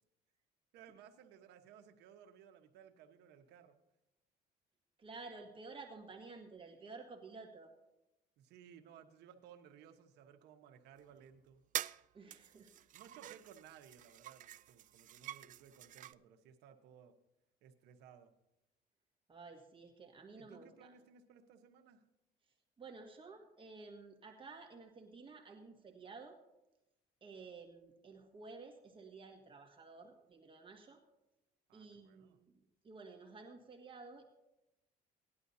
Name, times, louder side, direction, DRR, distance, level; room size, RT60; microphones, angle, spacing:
voice 1, 0.7-3.8 8.4-11.6 12.9-17.1 17.6-18.3 20.3-22.0 31.7-32.4, right 8 dB, 85° right, 5 dB, 1.2 m, -59 dB
voice 2, 5.0-7.7 12.1-12.9 19.3-20.9 22.8-26.4 27.2-31.0 31.7-32.6 32.8-34.3, right 4 dB, 30° right, 2 dB, 1.7 m, -53 dB
sound 1, 11.1-11.2 11.7-12.0 12.3-16.1, right 13 dB, 50° right, 0.4 m, -46 dB
18.5 x 11.0 x 2.8 m, 0.92 s
cardioid pair, 110°, 17 cm